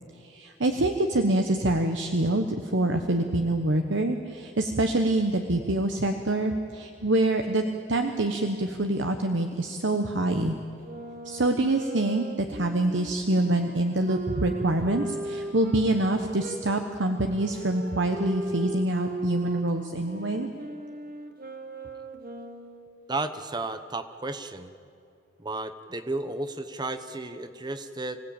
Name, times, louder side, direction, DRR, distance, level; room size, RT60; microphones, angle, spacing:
voice 1, 0.2-7.6 7.9-10.5 11.2-20.5, right 1 dB, 65° right, 5 dB, 1.1 m, -26 dB
sound 1, 10.8-16.6 17.4-23.0, right 3 dB, 50° right, 1.7 m, -38 dB
voice 2, 23.1-24.7 25.4-28.2, right 2 dB, 20° right, 10 dB, 1.0 m, -33 dB
25.5 x 16.5 x 8.9 m, 2.5 s
head